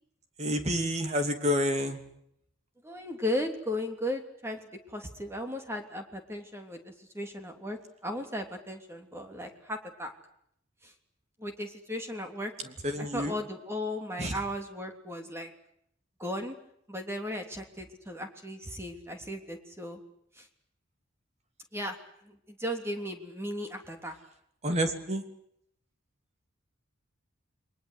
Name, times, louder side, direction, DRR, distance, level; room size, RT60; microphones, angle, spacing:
voice 1, 0.4-2.0 12.8-13.3 14.2-14.4 24.6-25.2, equal, 30° right, 6 dB, 2.9 m, -29 dB
voice 2, 2.8-4.6 4.9-10.1 10.8-10.9 11.4-12.5 13.0-15.5 16.2-16.6 16.9-20.0 20.4-20.5 21.7-22.0 22.2-24.2, left 1 dB, 10° right, 4 dB, 3.2 m, -36 dB
30.0 x 22.5 x 8.3 m, 0.73 s
head